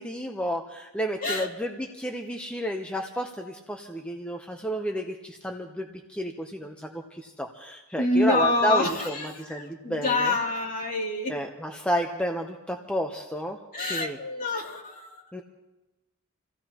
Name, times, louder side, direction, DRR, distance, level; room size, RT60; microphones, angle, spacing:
voice 1, 0.0-10.3 11.3-14.2 15.3-15.4, equal, 5° left, 2 dB, 0.7 m, -31 dB
voice 2, 8.0-11.4 13.7-15.2, left 2 dB, 40° left, -2 dB, 2.7 m, -27 dB
28.0 x 16.0 x 2.9 m, 1.0 s
head